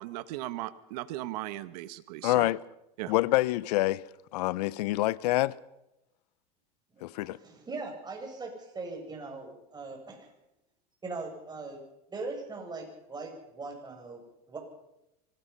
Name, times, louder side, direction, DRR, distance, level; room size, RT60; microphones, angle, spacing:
voice 1, 0.0-2.5 3.0-3.1, right 16 dB, 75° right, 1.5 m, -37 dB
voice 2, 2.2-2.6 3.1-4.0 4.3-5.5 7.0-7.4, left 18 dB, 80° left, 0.8 m, -26 dB
voice 3, 7.0-10.3 11.0-11.8 12.1-14.2 14.5-14.6, right 3 dB, 20° right, 7.7 m, -40 dB
25.0 x 18.5 x 5.7 m
supercardioid pair, 105°, 20 cm